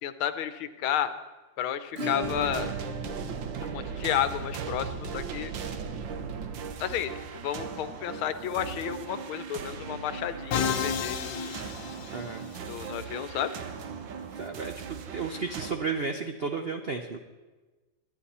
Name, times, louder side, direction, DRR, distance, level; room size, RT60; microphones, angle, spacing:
voice 1, 0.0-1.1 1.6-2.7 3.6-5.5 6.8-7.1 7.4-11.5 12.7-13.5, left 10 dB, 90° left, 12 dB, 1.7 m, -31 dB
Acoustic guitar / Strum, 2.0-10.6 10.8-10.9 11.2-11.3 11.7-11.8 13.8-13.9 15.0-15.1, right 1 dB, 35° right, 1.2 m, -42 dB
sound 1, 2.2-15.7, right 6 dB, 70° right, 1.6 m, -38 dB
Musical instrument, 10.5-12.6, left 7 dB, 65° left, 1.4 m, -31 dB
voice 2, 12.1-12.4 14.3-17.2, right 4 dB, 85° right, 6 dB, 0.5 m, -33 dB
24.0 x 9.8 x 4.3 m, 1.2 s
omnidirectional pair, 2.2 m